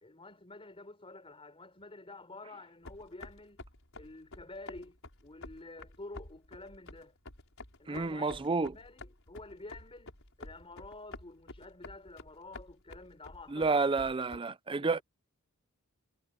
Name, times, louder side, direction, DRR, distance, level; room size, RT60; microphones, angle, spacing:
voice 1, 0.0-3.6 4.0-7.1 7.8-13.9 14.4-15.0, left 2 dB, 25° left, 4.2 m, -50 dB
sound 1, 2.8-14.4, left 2 dB, 65° left, 5.7 m, -50 dB
voice 2, 7.9-8.7 13.5-15.0, right 4 dB, 25° right, 0.5 m, -30 dB
head